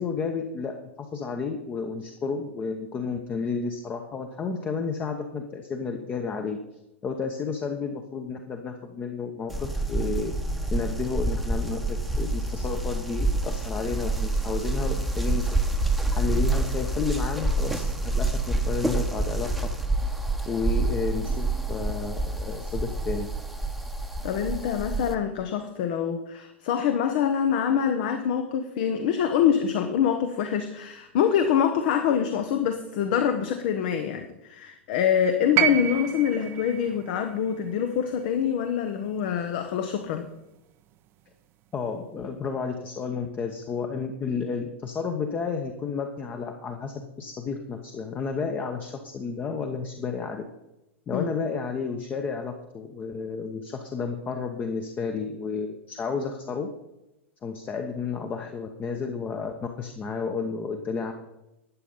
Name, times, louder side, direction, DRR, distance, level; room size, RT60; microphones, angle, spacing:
voice 1, 0.0-6.6 7.0-10.3 10.7-15.6 16.1-19.5 20.5-23.3 41.7-50.5 51.1-56.7 57.4-61.1, left 5 dB, 25° left, 5 dB, 1.1 m, -31 dB
sound 1, 9.5-25.1, right 2 dB, ahead, 1.1 m, -27 dB
voice 2, 24.2-40.3 51.1-51.2, left 8 dB, 50° left, 7 dB, 1.0 m, -25 dB
sound 2, 35.6-39.7 40.9-41.0, right 12 dB, 35° right, 0.7 m, -30 dB
13.0 x 8.7 x 5.4 m, 0.93 s
figure-of-eight pair, 95°, 7 cm